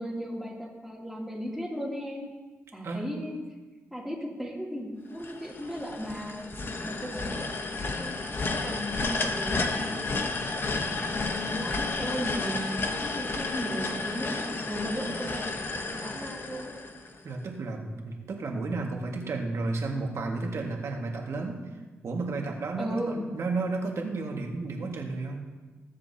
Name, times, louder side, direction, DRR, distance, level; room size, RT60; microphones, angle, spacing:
voice 1, 0.0-2.3 2.7-3.4 3.9-8.2 8.6-11.0 11.5-16.8 22.8-23.2, equal, ahead, -5 dB, 2.9 m, -36 dB
sound 1, 5.2-17.3, left 3 dB, 45° left, 1.0 m, -32 dB
voice 2, 17.2-21.6 22.0-25.4, right 3 dB, 65° right, 1 dB, 1.8 m, -32 dB
20.5 x 7.4 x 2.9 m, 1.3 s
cardioid pair, 85°, 5 cm